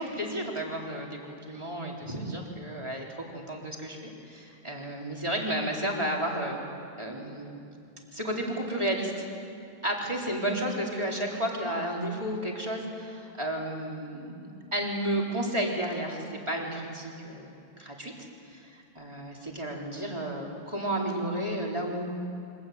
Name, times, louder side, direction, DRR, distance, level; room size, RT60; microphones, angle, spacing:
voice 1, 0.0-3.1 3.3-6.6 7.0-7.6 8.1-9.2 9.8-17.5 17.8-18.1 18.5-22.3, right 1 dB, 25° right, -2 dB, 4.3 m, -32 dB
25.0 x 21.0 x 9.6 m, 2.6 s
omnidirectional pair, 1.3 m